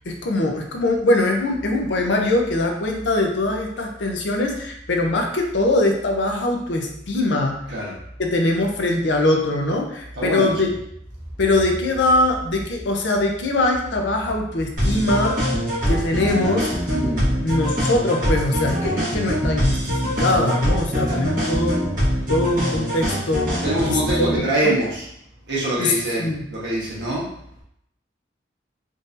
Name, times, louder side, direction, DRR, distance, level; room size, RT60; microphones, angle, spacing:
voice 1, 0.1-7.6 8.2-10.7 11.4-15.4 15.9-16.7 17.4-21.8 22.3-24.7 25.8-25.9 26.2-26.4, left 2 dB, 70° left, 2 dB, 0.6 m, -22 dB
voice 2, 10.1-10.7 16.9-17.3 21.0-21.3 23.6-25.1 25.5-27.3, right 1 dB, 65° right, -6 dB, 1.2 m, -24 dB
sound 1, 10.8-17.6, equal, 5° right, 0.7 m, -39 dB
sound 2, 14.8-24.4, equal, 45° right, 1.3 m, -23 dB
3.7 x 2.6 x 2.6 m, 0.74 s
head